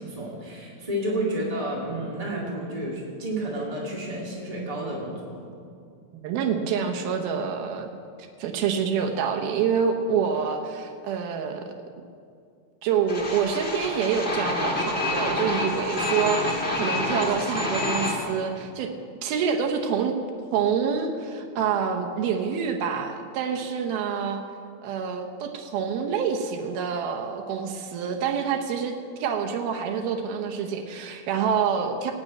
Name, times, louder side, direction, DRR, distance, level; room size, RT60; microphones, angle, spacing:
voice 1, 0.0-5.4, right 1 dB, 30° right, -4 dB, 0.6 m, -31 dB
voice 2, 6.2-7.9 8.4-11.7 12.8-18.9 19.2-20.2 20.5-24.4 24.8-32.1, right 6 dB, 75° right, 4 dB, 2.6 m, -27 dB
sound 1, 13.1-18.2, left 1 dB, 25° left, 1.3 m, -27 dB
19.0 x 6.4 x 8.8 m, 2.3 s
omnidirectional pair, 4.8 m